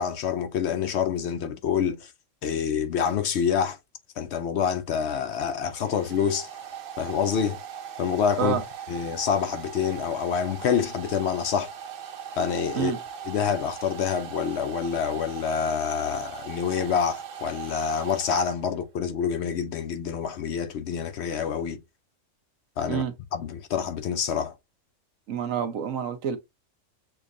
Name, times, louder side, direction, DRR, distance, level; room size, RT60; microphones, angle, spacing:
voice 1, 0.0-2.1 2.4-3.8 4.2-6.5 7.0-7.6 8.0-8.6 8.9-11.7 12.4-12.9 13.3-21.8 22.8-23.0 23.3-24.5, left 7 dB, 65° left, 0.8 m, -27 dB
Domestic sounds home sounds, 5.1-18.8, right 8 dB, 55° right, 0.7 m, -39 dB
voice 2, 25.3-26.4, right 8 dB, 85° right, 1.2 m, -27 dB
6.8 x 2.4 x 2.6 m
omnidirectional pair, 1.4 m